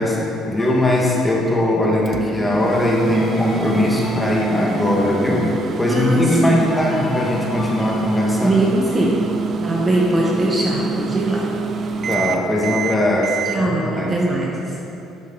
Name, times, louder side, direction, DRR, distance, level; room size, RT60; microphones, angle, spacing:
voice 1, 0.0-8.6 9.0-9.1 12.1-14.2, left 1 dB, 10° left, -3 dB, 1.4 m, -20 dB
sound 1, 0.6-10.0, left 3 dB, 30° left, 0.7 m, -37 dB
Microwave oven, 2.1-13.6, right 4 dB, 40° right, 0.5 m, -26 dB
voice 2, 5.9-6.6 8.4-9.3 9.6-11.5 13.5-14.8, right 2 dB, 20° right, -3 dB, 0.9 m, -21 dB
11.0 x 6.4 x 3.8 m, 2.9 s
cardioid pair, 125°, 0 cm